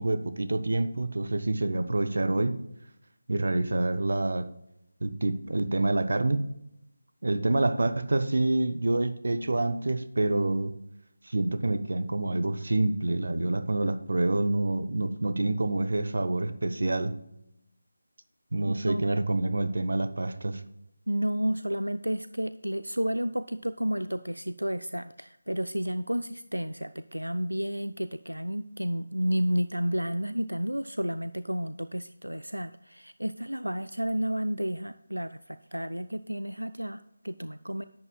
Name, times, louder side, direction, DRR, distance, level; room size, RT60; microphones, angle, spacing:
voice 1, 0.0-2.6 3.3-4.5 5.0-6.4 7.2-10.7 11.3-17.1 18.5-20.6, right 2 dB, 55° right, 11 dB, 0.8 m, -27 dB
voice 2, 18.7-19.2 21.1-37.8, equal, 85° right, 11 dB, 0.4 m, -31 dB
11.0 x 8.3 x 2.3 m, 0.80 s
figure-of-eight pair, 160°, 0 cm